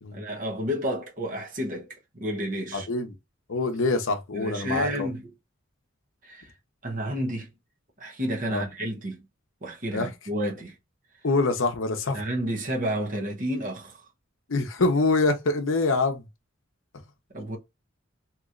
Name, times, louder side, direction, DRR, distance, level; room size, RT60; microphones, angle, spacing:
voice 1, 0.1-1.9 2.1-2.9 4.3-5.3 6.2-6.5 6.8-7.5 8.0-9.2 9.6-10.7 12.1-14.0 17.3-17.6, equal, 40° right, 0.9 m, -30 dB
voice 2, 2.7-3.1 3.5-5.1 8.5-8.6 9.9-10.1 11.2-12.2 14.5-16.2, left 3 dB, 65° left, 0.7 m, -25 dB
3.0 x 2.9 x 2.5 m
head